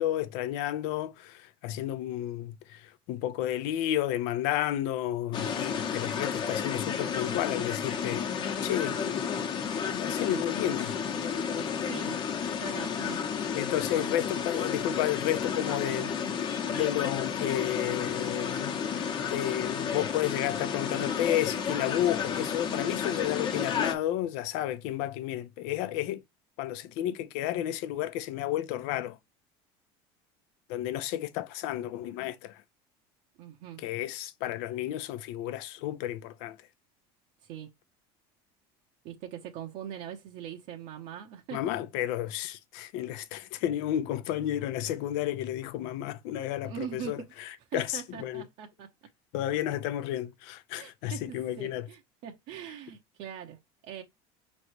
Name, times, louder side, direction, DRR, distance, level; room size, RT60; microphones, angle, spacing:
voice 1, 0.0-8.3 8.6-9.2 9.8-11.0 13.5-16.1 16.7-18.8 19.3-26.2 26.6-29.2 30.7-32.6 33.8-36.6 41.5-48.4 49.3-51.9, left 12 dB, 75° left, 0.7 m, -32 dB
sound 1, 5.3-23.9, left 7 dB, 40° left, 1.0 m, -32 dB
voice 2, 11.8-12.2 12.6-13.2 15.7-16.1 33.4-33.8 37.4-37.7 39.0-41.6 46.6-47.3 47.6-48.9 50.8-51.2 51.6-54.0, right 9 dB, 65° right, 0.8 m, -42 dB
5.2 x 3.1 x 3.0 m
supercardioid pair, 125°, 13 cm